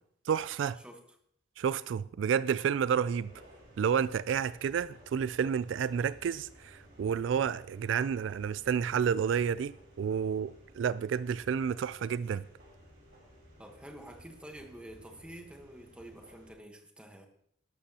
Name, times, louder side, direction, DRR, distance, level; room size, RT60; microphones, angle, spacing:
voice 1, 0.3-0.8 1.6-3.3 3.8-12.4, right 7 dB, 75° right, 0.3 m, -30 dB
voice 2, 0.8-1.2 13.6-17.3, right 1 dB, 5° right, 1.2 m, -49 dB
sound 1, 2.9-16.5, equal, 55° right, 5.2 m, -57 dB
12.5 x 11.5 x 2.9 m
head